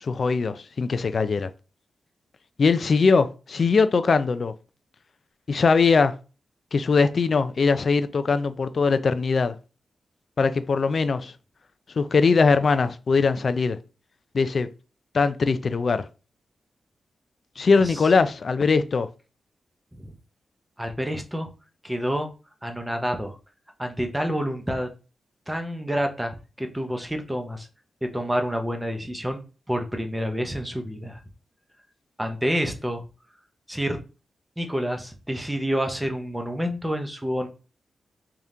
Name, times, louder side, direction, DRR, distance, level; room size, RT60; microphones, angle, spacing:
voice 1, 0.0-1.5 2.6-4.5 5.5-6.1 6.7-9.6 10.4-11.3 12.0-13.8 14.3-14.7 15.1-16.1 17.6-19.1, left 4 dB, 50° left, 0.4 m, -21 dB
voice 2, 20.8-21.5 21.8-22.3 22.6-23.4 23.8-24.9 25.5-27.7 28.0-29.4 29.7-31.2 32.2-33.0 33.7-34.0 34.6-37.5, equal, 5° right, 0.7 m, -28 dB
3.4 x 2.9 x 3.7 m
wide cardioid pair, 105°, 0 cm